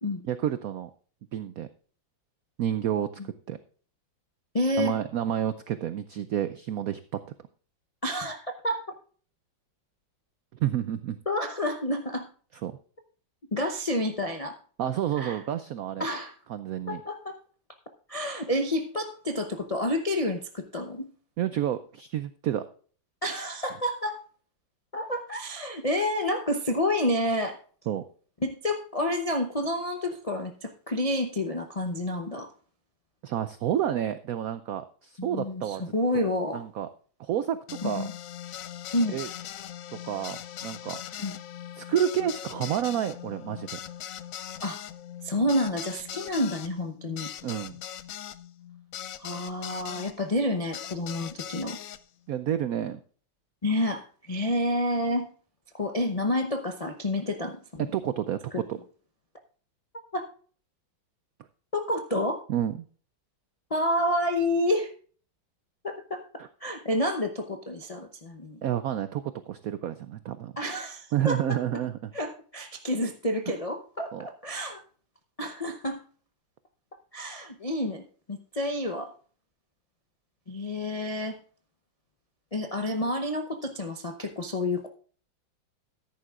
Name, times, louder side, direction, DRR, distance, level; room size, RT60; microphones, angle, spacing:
voice 1, 0.3-0.9 1.3-1.7 2.6-3.6 4.8-7.2 10.6-11.2 12.6-12.7 14.8-16.1 16.5-17.0 21.4-22.6 27.9-28.0 33.2-35.8 36.1-36.3 36.5-36.9 37.2-38.1 39.1-39.3 39.9-41.0 41.8-43.8 47.4-47.8 52.3-53.0 57.9-58.4 58.7-58.8 62.5-62.8 66.4-66.5 68.6-70.5 71.1-71.9 74.1-74.2, right 10 dB, 80° right, 12 dB, 0.7 m, -29 dB
voice 2, 4.5-5.0 8.0-8.8 11.3-12.3 13.5-14.6 15.1-15.4 16.0-16.3 16.9-17.4 18.1-21.1 23.2-24.2 24.9-27.6 28.4-32.5 35.2-36.6 37.8-38.1 38.9-39.2 41.2-41.4 44.6-44.8 45.2-47.3 49.2-51.8 53.6-55.3 55.7-57.9 58.5-58.6 60.1-60.3 61.7-62.4 63.7-64.9 65.8-66.2 66.6-68.6 70.6-71.6 72.1-74.8 75.4-76.0 77.1-79.1 80.5-81.4 82.5-84.9, left 1 dB, 55° left, 4 dB, 0.4 m, -29 dB
sound 1, 37.7-50.1 50.7-52.0, left 10 dB, 85° left, 0.7 m, -40 dB
13.5 x 10.5 x 2.4 m, 0.43 s
omnidirectional pair, 2.1 m